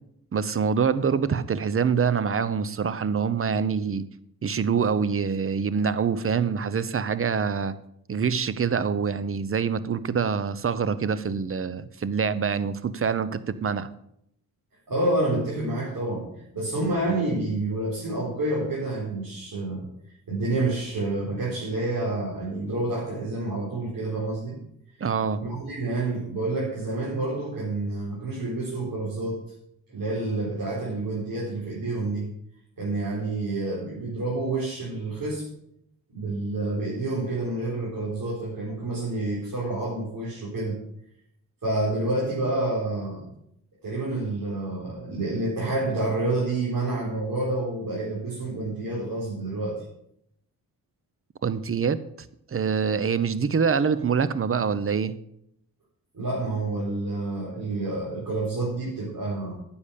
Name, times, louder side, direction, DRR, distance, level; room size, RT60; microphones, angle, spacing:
voice 1, 0.3-4.0 4.4-7.7 8.1-13.9 25.0-25.4 51.4-52.0 52.5-55.1, right 6 dB, 35° right, 15 dB, 0.8 m, -25 dB
voice 2, 14.9-16.2 16.5-19.8 20.3-24.6 25.4-29.4 29.9-32.3 32.8-35.4 36.1-40.8 41.6-43.3 43.8-49.8 56.1-59.5, right 2 dB, 60° right, -6 dB, 4.4 m, -28 dB
10.0 x 7.2 x 6.6 m, 0.75 s
cardioid pair, 75°, 38 cm